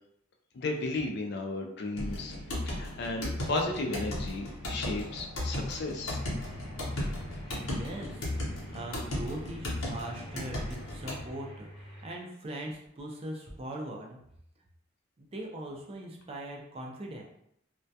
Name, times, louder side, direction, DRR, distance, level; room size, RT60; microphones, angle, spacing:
voice 1, 0.5-2.4 2.7-6.2, left 2 dB, 55° left, 2 dB, 0.3 m, -34 dB
sound 1, 2.0-11.2, left 1 dB, 90° left, 0.7 m, -36 dB
sound 2, 6.1-12.1, equal, 30° left, 0.8 m, -48 dB
voice 2, 7.5-8.3 8.7-14.2 15.2-17.2, right 1 dB, 30° right, -1 dB, 0.4 m, -41 dB
2.2 x 2.1 x 2.6 m, 0.74 s
head